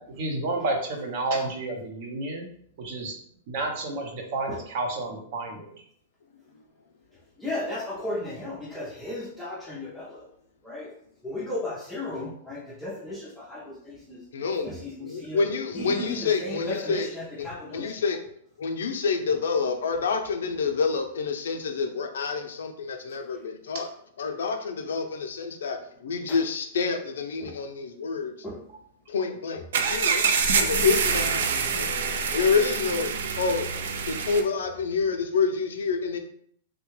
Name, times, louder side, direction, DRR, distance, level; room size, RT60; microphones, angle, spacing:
voice 1, 0.0-2.5 2.8-3.1 3.5-5.7, right 2 dB, 45° right, 2 dB, 0.7 m, -30 dB
voice 2, 7.1-10.3 10.6-11.0 11.2-14.2 14.6-18.0 23.1-23.4 26.3-26.4 27.4-27.5 28.4-28.6 29.5-29.6 30.6-30.7, left 1 dB, ahead, -10 dB, 0.5 m, -35 dB
voice 3, 14.3-14.6 15.0-17.1 17.7-18.2 18.6-23.9 24.2-28.3 29.1-30.3 30.6-31.9 32.3-33.1 33.4-33.7 34.1-36.2, left 5 dB, 90° left, 5 dB, 0.5 m, -27 dB
sound 1, 29.7-34.4, right 5 dB, 70° right, 0.4 m, -26 dB
3.3 x 2.2 x 3.1 m, 0.66 s
supercardioid pair, 160°, 0 cm